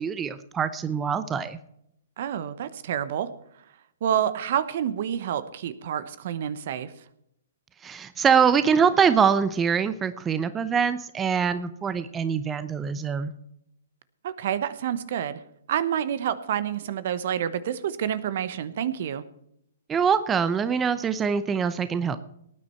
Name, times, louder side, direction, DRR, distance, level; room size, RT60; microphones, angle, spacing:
voice 1, 0.0-1.6 7.8-13.3 19.9-22.2, right 6 dB, 15° right, 13 dB, 0.7 m, -24 dB
voice 2, 2.2-3.3 4.0-6.9 14.2-15.4 15.7-19.2, right 9 dB, 55° right, 15 dB, 1.0 m, -28 dB
18.5 x 9.7 x 4.5 m, 0.76 s
hypercardioid pair, 125°, 0 cm